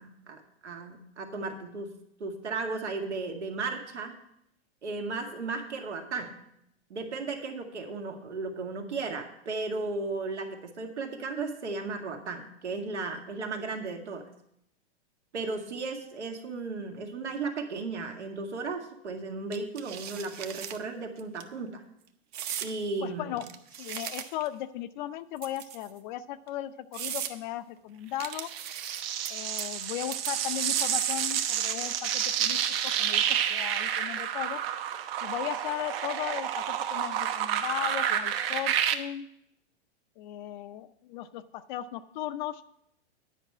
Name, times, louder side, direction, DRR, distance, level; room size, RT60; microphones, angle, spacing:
voice 1, 0.0-1.9 2.2-4.2 4.8-6.4 6.9-14.3 15.3-21.8 22.6-23.4, right 3 dB, 85° right, 3 dB, 2.0 m, -35 dB
sound 1, 19.5-20.8 21.2-21.4 22.3-22.7 23.4-24.5 25.4-26.0 26.5-26.6 26.9-27.3 28.2-29.3 29.6-29.9 30.1-31.1, right 9 dB, 30° right, 0.7 m, -38 dB
voice 2, 23.0-23.4 23.8-28.5 29.3-33.2 33.5-34.6 35.2-39.3 40.2-42.6, left 13 dB, 45° left, 13 dB, 0.6 m, -37 dB
sound 2, 28.3-38.9, right 9 dB, 60° right, 1.0 m, -29 dB
10.0 x 5.2 x 8.3 m, 0.76 s
hypercardioid pair, 130°, 34 cm